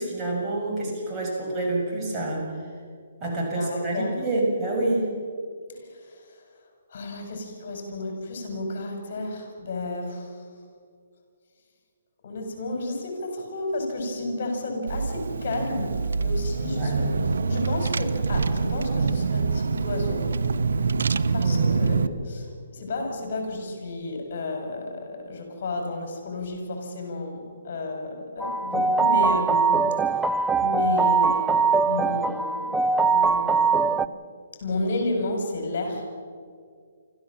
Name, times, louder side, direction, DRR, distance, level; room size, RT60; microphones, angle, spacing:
voice 1, 0.0-2.7 3.2-5.1 16.6-17.2 21.4-21.8, right 2 dB, 20° right, -3 dB, 6.4 m, -28 dB
voice 2, 3.2-4.2 5.7-6.4 6.9-10.4 12.2-20.3 21.3-29.8 30.6-32.8 33.1-34.1 34.6-36.0, left 2 dB, 50° left, 4 dB, 5.5 m, -32 dB
Car / Engine, 14.9-22.1, right 4 dB, 80° right, 0.9 m, -25 dB
sound 1, 28.4-34.1, right 5 dB, 5° right, 0.5 m, -22 dB
26.0 x 14.5 x 7.4 m, 2.1 s
hypercardioid pair, 150°, 0 cm